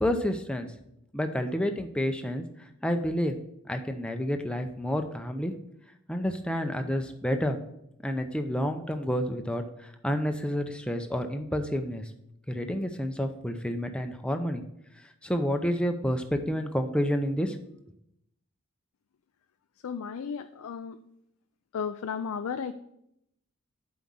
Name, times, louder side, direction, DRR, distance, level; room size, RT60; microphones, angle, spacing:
voice 1, 0.0-0.7 1.1-2.4 2.8-3.3 3.7-5.5 6.1-7.6 8.0-12.0 12.5-14.6 15.2-17.6, equal, 5° left, 6 dB, 0.6 m, -29 dB
voice 2, 19.8-21.0 21.7-22.7, left 6 dB, 70° left, 9 dB, 0.4 m, -34 dB
7.6 x 4.8 x 5.5 m, 0.77 s
head